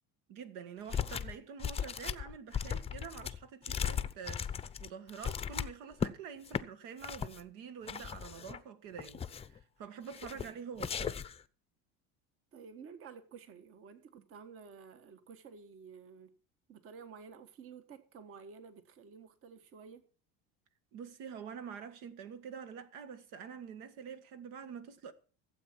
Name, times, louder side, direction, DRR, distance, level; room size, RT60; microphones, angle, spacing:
voice 1, 0.3-11.2 20.9-25.1, right 7 dB, 75° right, 1.6 m, -47 dB
sound 1, 0.9-1.3 1.6-6.1 6.5-6.6 7.0-7.4 7.9-8.6 9.0-9.6 10.1-10.5 10.8-11.4, left 7 dB, 20° left, 0.6 m, -37 dB
voice 2, 12.5-16.3 16.7-20.1, right 6 dB, 45° right, 1.4 m, -52 dB
16.0 x 8.0 x 5.9 m
cardioid pair, 125°, 32 cm